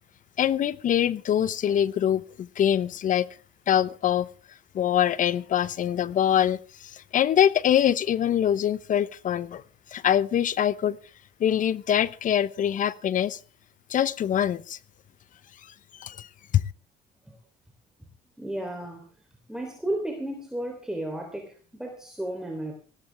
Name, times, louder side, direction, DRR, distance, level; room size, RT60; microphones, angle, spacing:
voice 1, 0.4-3.3 3.7-4.3 4.7-6.6 6.8-9.6 9.9-11.0 11.4-13.4 13.9-14.8 16.0-16.3 16.5-16.6, left 10 dB, 50° left, 19 dB, 0.9 m, -24 dB
voice 2, 18.4-19.1 19.5-22.7, right 1 dB, 5° right, 2 dB, 3.4 m, -33 dB
19.5 x 16.0 x 3.5 m, 0.36 s
cardioid pair, 110°, 17 cm